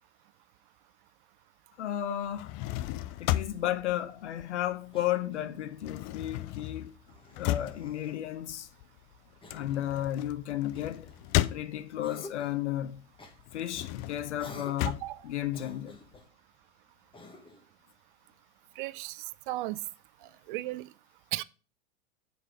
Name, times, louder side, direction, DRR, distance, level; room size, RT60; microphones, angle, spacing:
voice 1, 1.8-2.5 3.2-6.9 7.4-8.7 9.5-11.1 11.5-13.0 13.5-15.0 15.2-16.0, left 12 dB, 70° left, 0.9 m, -33 dB
sound 1, 2.2-5.1 5.4-12.2 12.6-16.2, left 16 dB, 35° left, 0.4 m, -35 dB
Cough, 4.9-5.7 7.0-8.2 9.4-9.9 10.7-11.6 12.0-12.6 13.2-13.4 14.4-15.1 15.5-16.3 17.1-17.7, left 2 dB, 15° left, 1.4 m, -50 dB
voice 2, 18.8-19.8 20.5-20.9 21.3-21.4, right 18 dB, 45° right, 0.4 m, -35 dB
7.9 x 4.8 x 5.0 m
hypercardioid pair, 95°, 36 cm